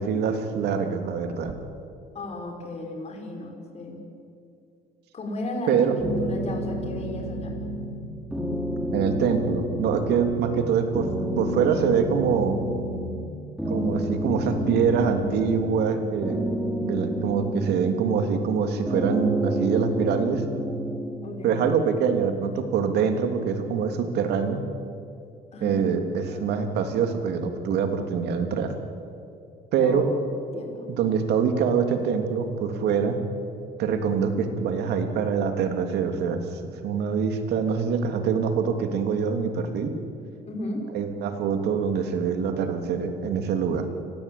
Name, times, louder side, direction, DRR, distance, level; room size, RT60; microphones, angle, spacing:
voice 1, 0.0-1.6 5.7-6.0 8.9-11.1 11.4-12.6 13.7-16.4 16.8-20.4 21.4-24.7 25.6-28.7 29.7-30.1 30.9-33.2 33.8-40.0 40.9-43.9, right 6 dB, 75° right, 6 dB, 3.2 m, -24 dB
voice 2, 2.1-4.0 5.1-5.7 6.2-7.5 12.4-12.6 21.2-21.7 25.5-26.6 29.8-30.0 30.4-30.9 40.5-40.9, left 2 dB, 40° left, 2 dB, 5.3 m, -35 dB
sound 1, 6.0-8.0 8.3-10.6 10.9-13.3 13.6-15.9 16.2-18.6 18.9-21.2, equal, 5° right, 4.4 m, -30 dB
30.0 x 19.5 x 8.7 m, 2.5 s
cardioid pair, 110°, 17 cm